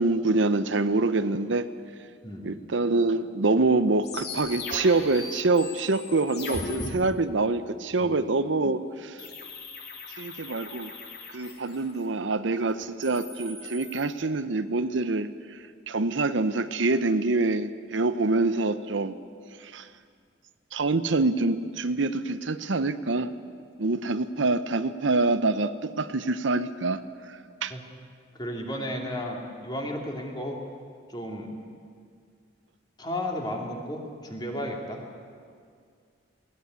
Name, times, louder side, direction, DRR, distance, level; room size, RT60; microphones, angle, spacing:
voice 1, 0.0-1.7 2.4-9.2 10.2-10.9 11.3-15.6 15.9-19.2 19.6-19.9 20.7-23.3 23.8-27.0 27.3-27.7, right 3 dB, 75° right, 12 dB, 0.8 m, -26 dB
sound 1, 4.0-6.9 9.2-12.0 12.8-14.1, left 3 dB, 55° left, 3.3 m, -38 dB
voice 2, 28.4-30.6 31.1-31.5 33.0-35.0, left 1 dB, 20° left, 1 dB, 2.9 m, -33 dB
21.0 x 17.5 x 9.5 m, 2.1 s
head